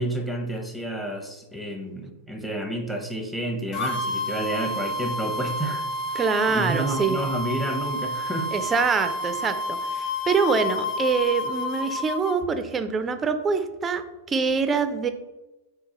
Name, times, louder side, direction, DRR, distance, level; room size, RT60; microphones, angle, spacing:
voice 1, 0.0-5.9 6.5-8.5, right 1 dB, ahead, 2 dB, 0.8 m, -30 dB
sound 1, 3.7-12.4, left 1 dB, 40° left, 0.6 m, -30 dB
voice 2, 6.1-7.2 8.5-15.1, right 5 dB, 20° right, 9 dB, 0.4 m, -25 dB
4.6 x 2.4 x 3.8 m, 1.1 s
hypercardioid pair, 120°, 0 cm